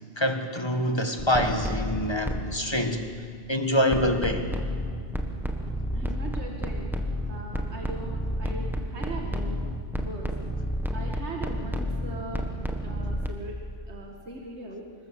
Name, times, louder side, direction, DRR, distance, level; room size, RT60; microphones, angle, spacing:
voice 1, 0.2-3.1 3.5-4.5, left 1 dB, 20° left, 6 dB, 1.6 m, -25 dB
sound 1, 1.2-2.6 3.9-13.3, equal, ahead, 1.5 m, -31 dB
voice 2, 5.9-7.0 7.3-9.6 9.9-10.3 10.9-12.5 12.8-13.6 13.9-14.9, right 1 dB, 60° right, 1 dB, 2.3 m, -39 dB
26.0 x 21.5 x 7.7 m, 2.1 s
omnidirectional pair, 1.3 m